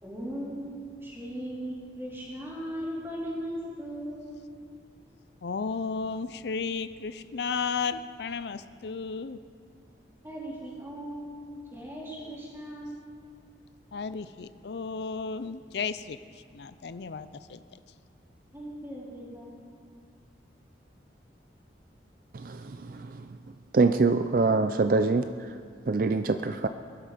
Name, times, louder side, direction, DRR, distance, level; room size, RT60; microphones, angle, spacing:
voice 1, 0.0-4.3 10.2-13.0 18.5-19.6, equal, 15° right, -6 dB, 3.8 m, -38 dB
voice 2, 5.4-9.4 13.9-16.2 16.5-17.6, left 5 dB, 65° left, 13 dB, 0.5 m, -33 dB
voice 3, 23.7-25.2 25.9-26.7, right 3 dB, 50° right, 9 dB, 0.4 m, -23 dB
21.5 x 12.0 x 5.1 m, 2.2 s
head